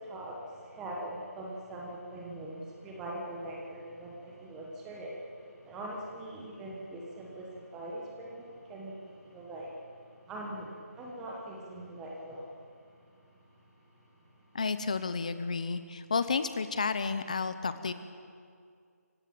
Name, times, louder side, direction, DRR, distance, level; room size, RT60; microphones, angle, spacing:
voice 1, 0.0-9.7 10.3-10.7 10.9-12.5, right 1 dB, 5° right, -2 dB, 1.1 m, -42 dB
voice 2, 14.5-17.9, left 4 dB, 25° left, 12 dB, 0.8 m, -31 dB
25.5 x 16.0 x 8.7 m, 2.2 s
figure-of-eight pair, 175°, 9 cm